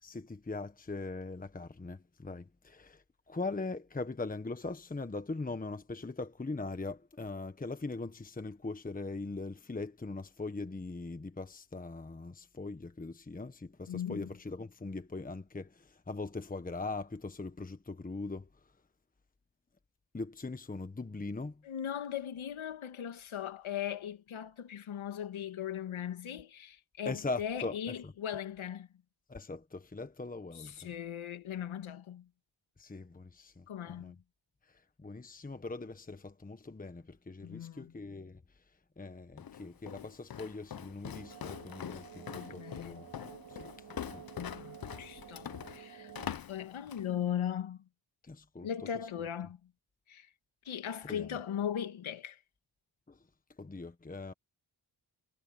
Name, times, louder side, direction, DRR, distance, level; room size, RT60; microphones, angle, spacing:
voice 1, 0.0-18.5 20.1-21.6 27.0-28.1 29.3-30.9 32.8-34.2 34.7-38.4 39.0-43.1 43.5-43.7 44.1-44.2 48.2-48.7 51.0-51.4 53.1-53.2 53.6-54.3, left 3 dB, 15° left, 1.3 m, -41 dB
voice 2, 13.9-14.3 21.6-28.9 30.5-32.3 33.7-34.1 37.4-37.9 42.3-43.1 44.4-46.1 46.5-47.8 48.6-49.6 50.1-50.3 50.7-52.4, left 9 dB, 80° left, 2.2 m, -38 dB
Walk footsteps, 39.4-47.1, left 9 dB, 45° left, 0.9 m, -44 dB
sound 1, 41.1-46.3, right 8 dB, 55° right, 2.9 m, -51 dB
cardioid pair, 85°, 47 cm